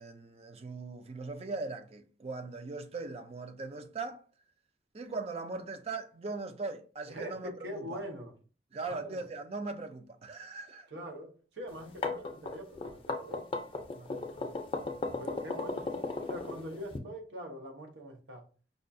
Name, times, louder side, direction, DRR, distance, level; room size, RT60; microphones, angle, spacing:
voice 1, 0.0-4.3 4.9-8.0 8.7-10.9 14.1-14.3, right 3 dB, 35° right, 0.4 m, -40 dB
voice 2, 7.1-8.4 8.8-9.2 10.9-14.5 15.2-18.5, equal, 85° right, 0.8 m, -44 dB
sound 1, 11.7-17.0, left 3 dB, 30° left, 0.5 m, -35 dB
5.1 x 2.3 x 2.6 m
head